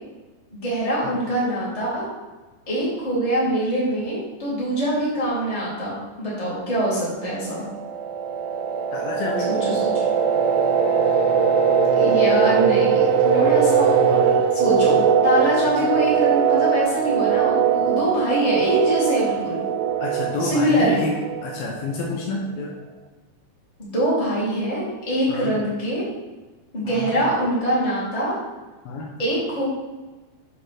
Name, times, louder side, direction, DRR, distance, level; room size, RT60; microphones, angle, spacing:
voice 1, 0.5-2.1 2.7-7.6 9.5-10.1 11.0-11.2 12.0-19.6 20.4-21.0 23.8-26.0 26.7-28.4 29.2-29.6, right 1 dB, 10° left, -7 dB, 1.9 m, -24 dB
sound 1, 7.4-21.9, right 7 dB, 85° right, 2.6 m, -20 dB
voice 2, 8.9-9.6 13.3-13.4 20.0-22.8 25.3-25.5 26.9-27.2 28.9-29.1, left 3 dB, 75° left, -1 dB, 2.6 m, -29 dB
7.8 x 4.1 x 5.9 m, 1.2 s
omnidirectional pair, 4.7 m